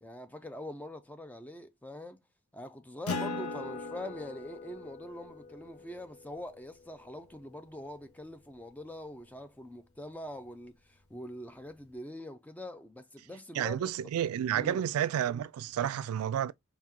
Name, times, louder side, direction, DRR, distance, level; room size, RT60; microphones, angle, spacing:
voice 1, 0.0-2.2 2.5-13.8 14.5-14.8, left 1 dB, 5° left, 0.3 m, -44 dB
Acoustic guitar, 3.1-8.0, left 4 dB, 90° left, 0.7 m, -41 dB
voice 2, 13.5-16.5, right 9 dB, 85° right, 0.3 m, -30 dB
2.9 x 2.7 x 3.6 m
head